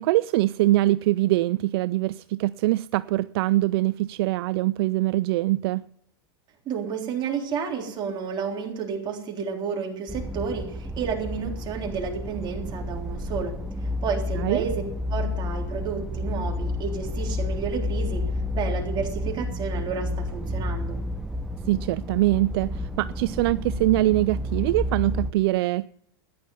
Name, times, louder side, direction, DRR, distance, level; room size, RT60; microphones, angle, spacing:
voice 1, 0.0-5.8 14.4-14.7 21.7-25.9, right 17 dB, 65° right, 0.4 m, -23 dB
voice 2, 6.7-13.6 13.8-14.8 15.1-18.3 18.5-21.0, right 6 dB, 35° right, 3.6 m, -31 dB
sound 1, 10.1-25.3, left 1 dB, 5° right, 0.7 m, -30 dB
14.0 x 10.5 x 5.5 m
supercardioid pair, 130°, 14 cm